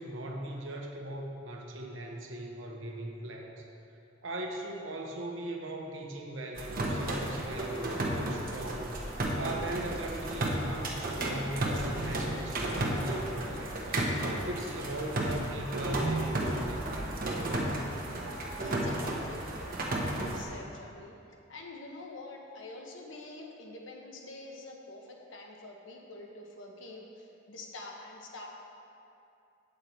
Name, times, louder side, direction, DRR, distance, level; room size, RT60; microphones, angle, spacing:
voice 1, 0.0-3.6 4.2-9.0 9.3-13.8 14.5-17.2, right 1 dB, 80° right, 1 dB, 1.1 m, -39 dB
sound 1, 6.6-20.4, right 1 dB, 50° right, 1.0 m, -33 dB
voice 2, 18.5-28.5, left 2 dB, 80° left, 0 dB, 1.1 m, -47 dB
8.4 x 6.8 x 4.5 m, 2.7 s
head